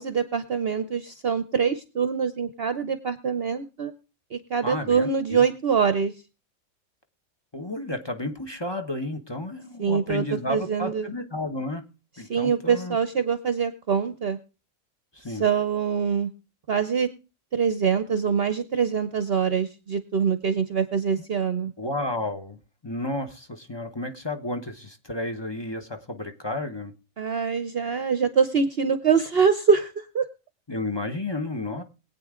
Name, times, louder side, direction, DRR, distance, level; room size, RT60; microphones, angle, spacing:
voice 1, 0.0-3.9 4.3-6.1 9.8-11.1 12.3-14.4 15.3-16.3 16.7-17.1 17.5-21.7 27.2-30.2, right 6 dB, 50° right, 11 dB, 0.9 m, -24 dB
voice 2, 4.6-5.4 7.5-11.8 12.2-13.0 15.1-15.5 21.8-22.6 22.8-26.9 30.7-31.8, left 1 dB, 20° left, 5 dB, 1.0 m, -32 dB
21.5 x 8.6 x 3.7 m, 0.32 s
omnidirectional pair, 1.4 m